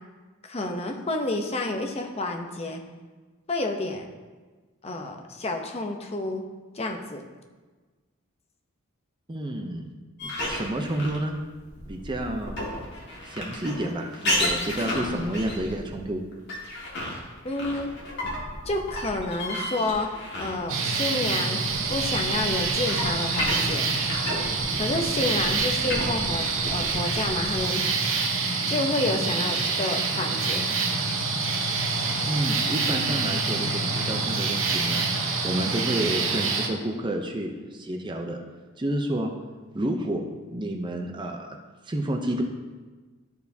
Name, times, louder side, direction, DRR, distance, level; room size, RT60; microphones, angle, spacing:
voice 1, 0.4-2.8 3.5-4.1 4.8-6.4 6.7-7.2 17.4-17.9 18.7-20.1 20.4-21.6 21.9-23.9 24.8-27.8 28.7-30.7, left 2 dB, 30° left, 3 dB, 0.6 m, -29 dB
voice 2, 9.3-9.9 10.2-11.3 11.9-12.6 13.2-16.2 32.3-38.4 38.8-39.3 39.7-40.2 40.5-41.6 41.9-42.4, right 1 dB, 20° right, 3 dB, 0.5 m, -30 dB
sound 1, 10.2-20.9 21.2-28.0, left 1 dB, 55° left, 1.8 m, -32 dB
sound 2, 20.7-36.7, right 4 dB, 60° right, 0.9 m, -26 dB
12.5 x 4.6 x 2.7 m, 1.3 s
head